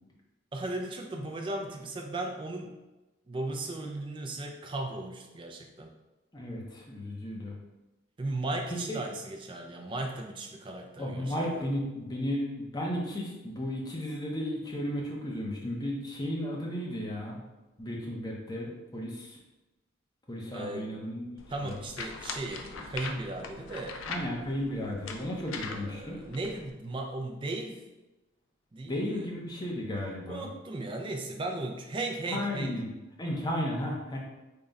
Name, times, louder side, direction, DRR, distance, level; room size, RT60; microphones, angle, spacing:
voice 1, 0.5-2.7 3.3-5.9 8.2-11.6 20.5-20.9 21.5-24.0 25.7-27.8 28.7-29.3 30.3-32.8, right 2 dB, 25° right, 2 dB, 0.3 m, -36 dB
voice 2, 6.3-7.5 8.9-9.0 11.0-17.4 17.8-19.4 20.3-21.3 21.6-21.8 24.1-26.2 28.9-30.4 32.3-32.9 33.2-34.2, left 1 dB, 20° left, -3 dB, 0.6 m, -34 dB
sound 1, 21.4-26.7, left 4 dB, 80° left, 0.4 m, -42 dB
3.6 x 2.2 x 3.9 m, 1.1 s
head